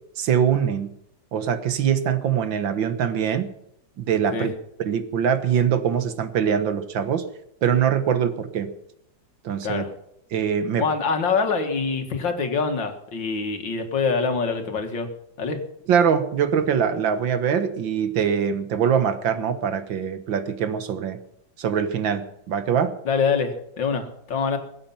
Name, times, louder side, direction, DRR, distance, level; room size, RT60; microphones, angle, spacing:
voice 1, 0.2-0.9 1.3-3.5 4.0-4.5 4.8-7.2 7.6-8.7 9.4-9.8 10.3-10.9 15.9-21.2 21.6-23.0, right 8 dB, 75° right, 10 dB, 1.9 m, -23 dB
voice 2, 10.8-15.1 15.4-15.6 23.1-24.6, left 5 dB, 70° left, 5 dB, 2.5 m, -25 dB
21.5 x 8.8 x 5.8 m, 0.78 s
omnidirectional pair, 2.1 m